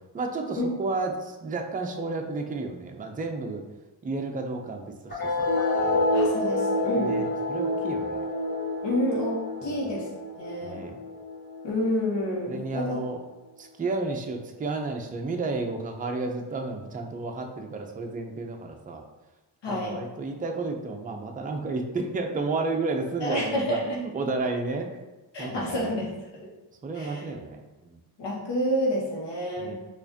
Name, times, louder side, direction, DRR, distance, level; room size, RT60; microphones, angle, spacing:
voice 1, 0.0-3.6 4.0-5.5 5.8-6.1 7.0-8.2 9.7-9.9 10.6-11.0 12.5-13.2 13.6-19.0 19.7-24.9 25.4-25.9 26.8-28.0 29.6-29.7, right 3 dB, 20° right, 3 dB, 0.5 m, -32 dB
sound 1, 5.1-12.1, left 2 dB, 20° left, 1.1 m, -28 dB
voice 2, 6.1-7.1 8.8-10.1 10.4-10.8 11.6-13.0 19.6-20.0 23.2-24.0 25.3-26.5 26.9-27.3 28.2-29.7, left 1 dB, 65° left, -4 dB, 1.1 m, -29 dB
4.7 x 2.5 x 2.7 m, 1.1 s
cardioid pair, 70°, 46 cm